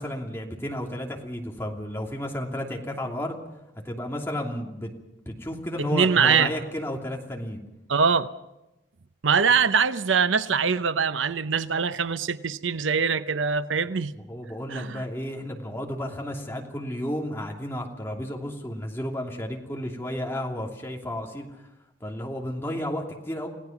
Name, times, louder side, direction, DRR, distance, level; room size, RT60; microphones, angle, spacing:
voice 1, 0.0-3.4 3.8-4.9 5.3-7.6 14.1-21.5 22.0-23.5, left 1 dB, 15° left, 2.9 m, -32 dB
voice 2, 5.9-6.5 7.9-8.3 9.2-14.1 14.7-15.0, right 6 dB, 90° right, 0.8 m, -23 dB
28.5 x 17.5 x 6.0 m
head